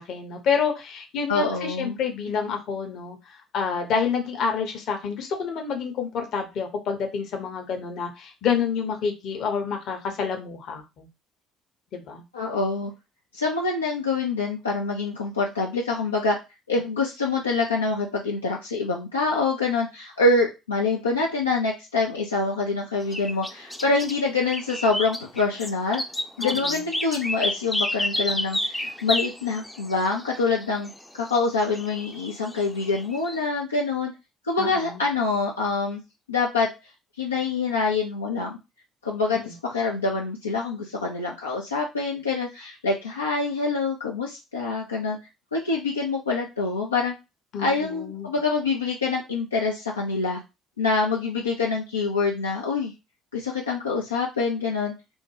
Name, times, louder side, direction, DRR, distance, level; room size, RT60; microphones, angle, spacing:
voice 1, 0.0-3.2 3.5-11.1 11.9-12.2 26.4-26.8 34.6-35.0 39.4-39.5 47.5-48.3, left 6 dB, 50° left, 4 dB, 0.7 m, -28 dB
voice 2, 1.3-2.0 12.3-12.9 13.3-16.4 16.7-26.0 26.4-34.1 34.4-36.0 36.3-36.7 37.2-38.6 39.0-45.2 45.5-47.1 47.6-50.4 50.8-52.9 53.3-54.9, left 3 dB, 80° left, -2 dB, 0.4 m, -25 dB
sound 1, 23.1-24.1 24.5-33.4, left 1 dB, 10° left, 0.5 m, -30 dB
3.4 x 2.1 x 3.1 m, 0.26 s
figure-of-eight pair, 55°, 0 cm